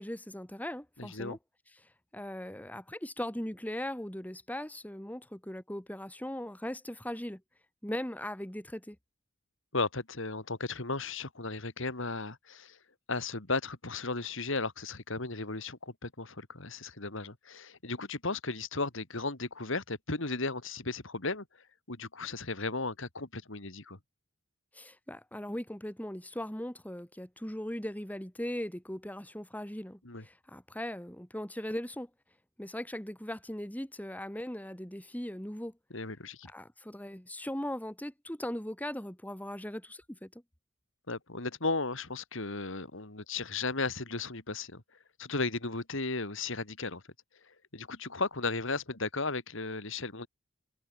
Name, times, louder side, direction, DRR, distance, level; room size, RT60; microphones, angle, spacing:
voice 1, 0.0-1.4 2.1-7.4 7.8-9.0 24.7-32.1 32.6-35.7 36.5-40.3, left 1 dB, 10° left, 1.9 m, -39 dB
voice 2, 1.0-1.4 9.7-12.8 13.1-21.4 21.9-24.0 30.0-30.2 35.9-36.5 41.1-44.8 45.2-47.0 47.7-50.3, left 3 dB, 65° left, 2.9 m, -35 dB
head